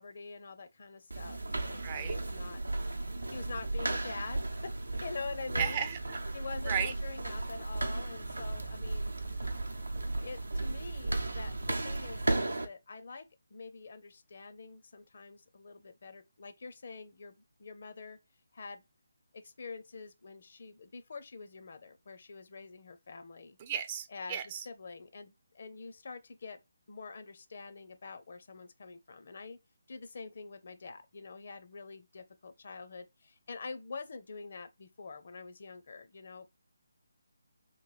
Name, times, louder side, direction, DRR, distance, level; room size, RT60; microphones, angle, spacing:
voice 1, 0.0-2.6 3.3-5.8 6.3-9.1 10.0-18.2 18.5-18.8 19.3-23.6 24.1-24.4 24.7-26.6 26.9-29.6 29.9-36.6, left 4 dB, 50° left, 0.5 m, -46 dB
sound 1, 1.1-12.7, right 2 dB, 85° right, 0.7 m, -35 dB
voice 2, 1.8-2.2 5.6-6.2 6.7-6.9 23.6-24.6, right 8 dB, 30° right, 0.4 m, -35 dB
3.1 x 2.5 x 3.9 m
figure-of-eight pair, 150°, 0 cm